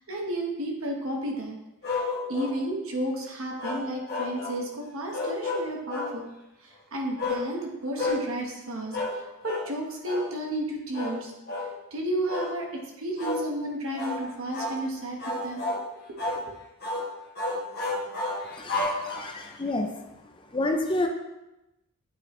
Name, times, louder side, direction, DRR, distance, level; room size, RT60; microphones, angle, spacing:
voice 1, 0.1-1.6 1.9-6.3 6.6-11.3 11.9-15.7 16.1-16.2, right 1 dB, 65° right, 0 dB, 1.3 m, -32 dB
sound 1, 1.8-2.6 3.6-4.6 5.1-6.2 7.2-7.5 8.0-8.2 8.9-9.2 9.4-9.7 10.0-10.3 10.9-11.2 11.5-11.7 12.3-12.5 13.2-13.4 14.0-14.2 14.5-14.8 15.2-15.8 16.2-16.4 16.8-17.1 17.4-19.5, left 2 dB, 45° left, 1.3 m, -31 dB
voice 2, 18.5-19.9 20.5-21.1, left 2 dB, 20° left, 4 dB, 0.5 m, -29 dB
8.7 x 4.7 x 3.2 m, 0.95 s
head